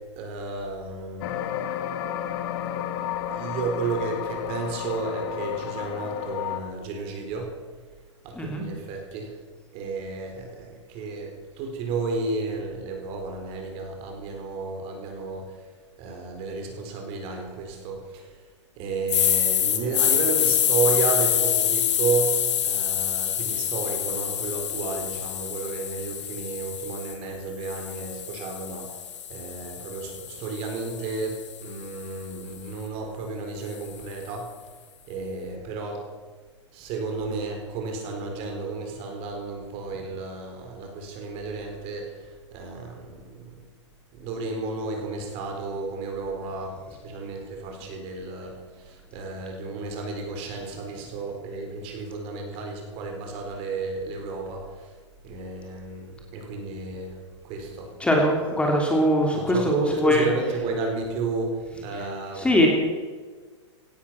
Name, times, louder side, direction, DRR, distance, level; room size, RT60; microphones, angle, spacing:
voice 1, 0.2-1.3 3.3-7.5 8.2-9.4 9.7-15.6 16.0-18.4 18.8-28.9 29.3-34.5 35.1-36.1 36.7-43.6 44.1-54.9 55.2-57.9 58.3-58.4 59.3-62.7, right 4 dB, 40° right, 2 dB, 4.3 m, -32 dB
sound 1, 1.2-6.6, left 10 dB, 50° left, 1.4 m, -31 dB
sound 2, 19.1-27.1 27.6-31.8, left 10 dB, 70° left, 1.9 m, -26 dB
voice 2, 58.0-60.3 62.4-62.7, equal, 5° left, 0 dB, 2.8 m, -21 dB
17.0 x 12.0 x 5.9 m, 1.5 s
hypercardioid pair, 125°, 15 cm